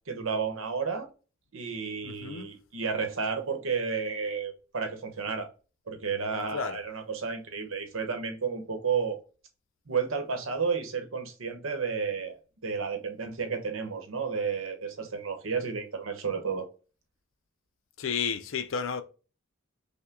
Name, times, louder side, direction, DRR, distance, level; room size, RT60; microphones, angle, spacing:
voice 1, 0.1-1.1 1.5-5.5 5.9-9.2 9.9-16.7, right 5 dB, 75° right, 0.9 m, -32 dB
voice 2, 2.0-2.5 6.5-6.8 18.0-19.0, left 6 dB, 70° left, 0.5 m, -32 dB
5.7 x 2.2 x 3.8 m
head